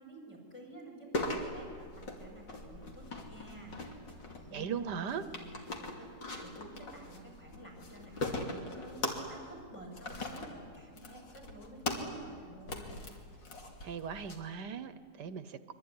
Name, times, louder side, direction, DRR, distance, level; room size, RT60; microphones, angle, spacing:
voice 1, 0.0-3.8 4.4-6.1 6.4-13.1, right 1 dB, 45° left, 1 dB, 7.4 m, -51 dB
sound 1, 1.1-14.4, left 2 dB, 90° left, 3.3 m, -41 dB
voice 2, 4.5-5.2 13.8-15.7, right 7 dB, 70° right, 12 dB, 1.4 m, -38 dB
25.0 x 24.0 x 9.7 m, 2.1 s
omnidirectional pair, 1.9 m